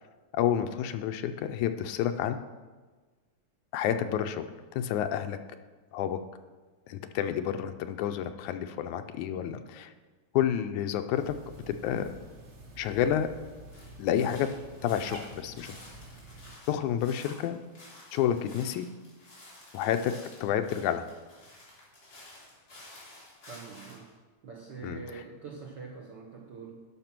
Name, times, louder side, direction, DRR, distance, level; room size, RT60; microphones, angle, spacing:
voice 1, 0.3-2.4 3.7-4.4 4.7-5.4 5.9-6.2 6.9-9.9 10.3-11.4 11.7-12.1 12.8-13.3 14.0-14.5 14.8-15.7 16.7-17.6 18.1-18.9 19.7-20.1 20.4-21.1 24.8-25.0, left 10 dB, 80° left, 8 dB, 2.0 m, -29 dB
Cat, 11.1-16.6, right 1 dB, 85° right, 0.6 m, -48 dB
sound 1, 13.7-24.1, left 1 dB, 30° left, 3.4 m, -52 dB
voice 2, 23.5-24.1 24.4-26.8, right 5 dB, 70° right, -2 dB, 1.0 m, -44 dB
11.0 x 6.0 x 6.0 m, 1.3 s
omnidirectional pair, 3.6 m